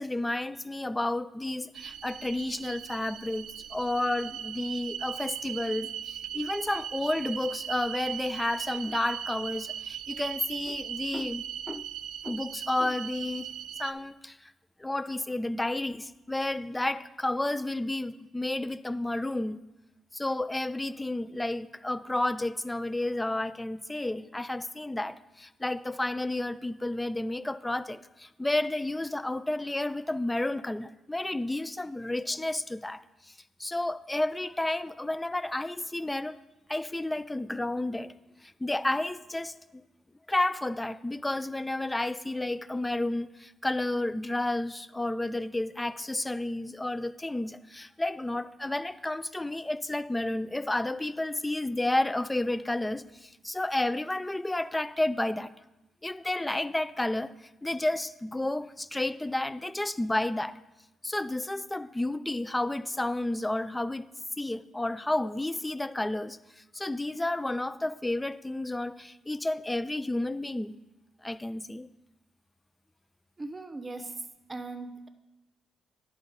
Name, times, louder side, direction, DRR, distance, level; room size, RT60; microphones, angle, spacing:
voice 1, 0.0-11.8 12.2-13.5 13.8-14.5 14.8-19.6 20.1-33.3 33.6-36.4 36.7-38.1 38.4-39.8 40.3-55.5 56.0-57.3 57.6-60.6 61.0-64.0 64.4-70.8 71.2-71.9, left 1 dB, 15° left, 15 dB, 0.3 m, -31 dB
sound 1, 1.7-13.9, right 10 dB, 80° right, 0.3 m, -39 dB
voice 2, 73.4-74.2 74.5-75.1, right 3 dB, 25° right, 9 dB, 0.8 m, -39 dB
10.5 x 5.2 x 3.9 m, 0.99 s
cardioid pair, 75°, 0 cm